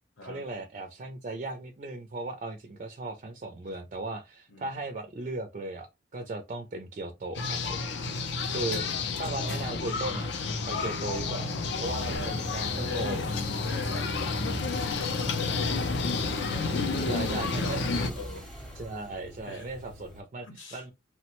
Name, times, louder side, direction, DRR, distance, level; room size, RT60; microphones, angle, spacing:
voice 1, 0.2-7.8 8.5-8.8 9.2-10.3 10.7-13.2 17.0-17.8 18.8-20.9, right 2 dB, 40° right, 0.3 m, -37 dB
sound 1, 7.3-18.1, left 4 dB, 60° left, 0.4 m, -30 dB
voice 2, 8.5-9.0 12.0-12.4 12.7-13.3 13.6-15.8 16.7-18.5 19.5-19.7 20.4-20.8, left 4 dB, 80° left, 0.9 m, -42 dB
sound 2, 11.8-20.2, right 1 dB, 5° left, 0.7 m, -41 dB
3.1 x 2.1 x 2.9 m
head